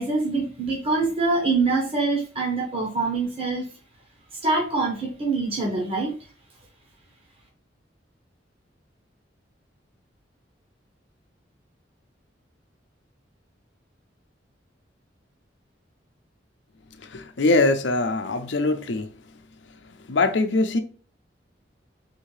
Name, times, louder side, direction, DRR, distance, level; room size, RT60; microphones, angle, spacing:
voice 1, 0.0-3.7 4.4-6.2, right 3 dB, 35° right, 1.1 m, -24 dB
voice 2, 17.1-19.0 20.1-20.8, left 2 dB, 80° left, 0.6 m, -22 dB
4.3 x 2.8 x 3.2 m
head